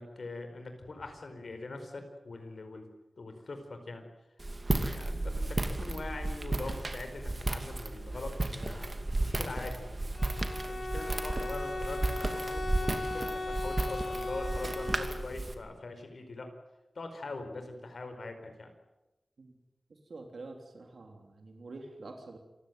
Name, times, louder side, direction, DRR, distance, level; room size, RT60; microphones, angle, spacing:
voice 1, 0.0-2.9 3.2-4.0 4.7-10.2 10.6-16.5 16.9-18.7, left 3 dB, 75° left, 7 dB, 4.9 m, -43 dB
Walk footsteps, 4.4-15.5, right 2 dB, 35° right, 2.5 m, -34 dB
Bowed string instrument, 10.1-15.4, left 2 dB, 60° left, 7.8 m, -37 dB
voice 2, 19.9-22.4, right 3 dB, 85° right, 3 dB, 3.4 m, -47 dB
27.5 x 15.5 x 9.5 m, 1.0 s
wide cardioid pair, 90°, 0 cm